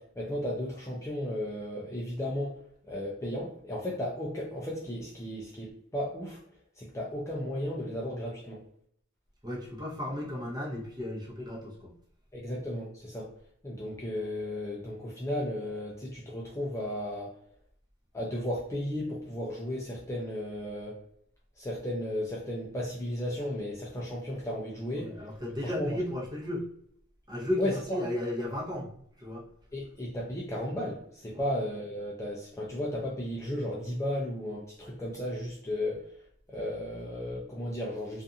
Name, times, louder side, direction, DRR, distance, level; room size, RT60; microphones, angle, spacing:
voice 1, 0.0-2.6 2.9-6.4 6.8-8.6 12.3-13.3 13.6-17.3 18.1-21.0 21.6-25.1 25.8-25.9 27.6-28.0 29.7-36.0 36.5-38.2, left 1 dB, 15° left, -4 dB, 0.4 m, -34 dB
voice 2, 9.4-11.9 25.0-26.7 27.3-28.9 29.2-29.4 31.3-31.5, left 1 dB, 20° right, -4 dB, 0.9 m, -34 dB
2.5 x 2.5 x 2.6 m, 0.67 s
head